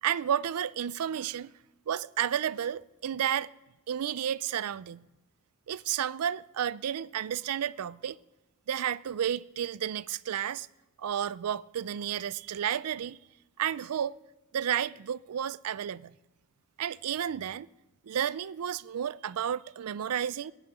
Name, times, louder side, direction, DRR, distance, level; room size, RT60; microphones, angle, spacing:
voice 1, 0.0-1.5 1.9-3.5 3.9-5.1 5.7-8.2 8.7-10.7 11.0-13.2 13.6-14.2 14.5-16.1 16.8-17.7 18.1-20.5, right 9 dB, 75° right, 0.4 m, -31 dB
16.5 x 7.2 x 8.8 m
head